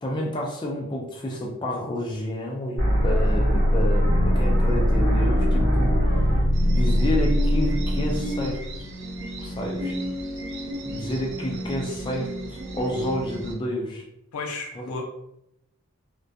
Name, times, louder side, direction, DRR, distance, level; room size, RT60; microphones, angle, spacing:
voice 1, 0.0-6.0 6.6-8.6 9.4-10.0 10.8-14.0 14.8-14.9, left 1 dB, 20° left, -1 dB, 0.3 m, -29 dB
sound 1, 2.8-8.7, equal, 80° right, 1.0 m, -21 dB
sound 2, 3.5-13.5, left 1 dB, 35° right, 0.9 m, -33 dB
sound 3, 6.5-13.5, right 2 dB, 55° right, 0.6 m, -42 dB
voice 2, 14.3-15.1, left 3 dB, 90° left, 2 dB, 0.5 m, -33 dB
2.2 x 2.2 x 2.6 m, 0.80 s
head